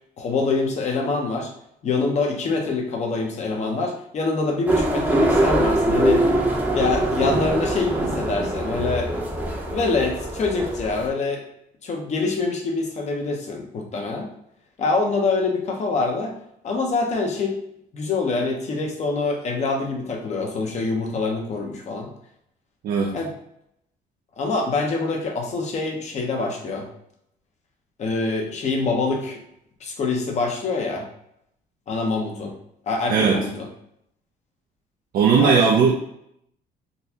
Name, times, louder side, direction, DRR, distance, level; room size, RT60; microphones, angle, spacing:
voice 1, 0.2-1.5 1.8-6.3 6.7-9.1 9.7-11.4 11.8-14.3 14.8-16.3 16.6-17.6 17.9-22.1 23.1-23.3 24.4-26.9 28.0-29.4 29.8-31.0 31.9-32.5 32.9-33.7 35.4-35.6, left 3 dB, 45° left, 1 dB, 0.9 m, -25 dB
sound 1, 4.7-11.1, right 1 dB, 10° right, 0.7 m, -23 dB
voice 2, 22.8-23.2 33.1-33.5 35.1-35.9, right 6 dB, 60° right, 0 dB, 0.5 m, -18 dB
3.9 x 2.3 x 2.8 m, 0.76 s
cardioid pair, 110°, 17 cm